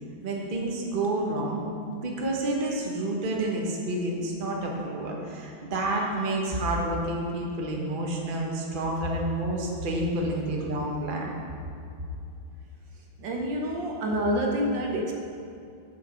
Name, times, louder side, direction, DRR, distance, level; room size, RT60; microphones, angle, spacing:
voice 1, 0.2-11.3, right 1 dB, 30° right, -1 dB, 1.0 m, -29 dB
voice 2, 13.2-15.1, equal, 65° right, 1 dB, 1.5 m, -27 dB
8.3 x 7.2 x 5.3 m, 2.5 s
omnidirectional pair, 2.3 m